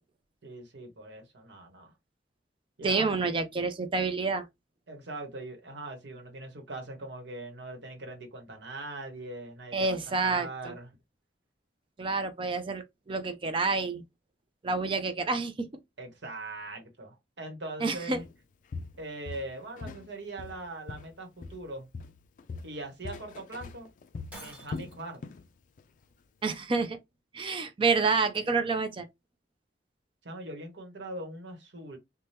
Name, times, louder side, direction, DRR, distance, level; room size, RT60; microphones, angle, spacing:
voice 1, 0.4-1.9 2.8-3.3 4.9-10.9 16.0-18.2 19.0-21.9 22.6-23.9 24.4-25.2 30.2-32.0, right 2 dB, 75° right, 1.1 m, -41 dB
voice 2, 2.8-4.5 9.7-10.7 12.0-14.0 14.6-15.7 17.8-18.2 26.4-27.0 27.3-29.1, right 4 dB, 30° right, 0.4 m, -28 dB
Walk footsteps, 18.1-18.3 18.7-20.1 20.4-21.7 21.9-25.5 25.8-26.0 26.5-26.6, left 4 dB, 45° left, 0.3 m, -41 dB
Shatter, 24.3-25.2, right 1 dB, 10° right, 1.2 m, -47 dB
2.8 x 2.2 x 3.2 m
head